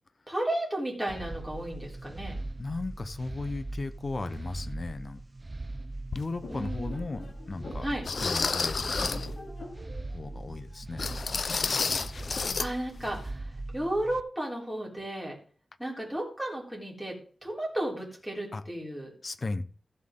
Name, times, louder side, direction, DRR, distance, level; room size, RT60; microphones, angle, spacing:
voice 1, 0.3-2.4 6.5-7.0 7.8-8.0 12.3-15.4 15.8-17.2 17.4-19.1, right 1 dB, ahead, 3.8 m, -34 dB
sound 1, 1.1-14.2, right 2 dB, 25° right, 0.4 m, -40 dB
voice 2, 2.6-5.2 6.2-9.4 10.1-11.4 18.5-18.6 19.2-19.6, left 3 dB, 40° left, 0.8 m, -36 dB
sound 2, 6.1-6.2 6.9-7.0 8.1-9.3 11.0-12.7 13.0-13.2 13.6-13.7, left 4 dB, 55° left, 0.4 m, -30 dB
sound 3, 6.4-11.5, left 2 dB, 70° left, 3.0 m, -47 dB
14.5 x 7.6 x 3.8 m
wide cardioid pair, 150°, 0 cm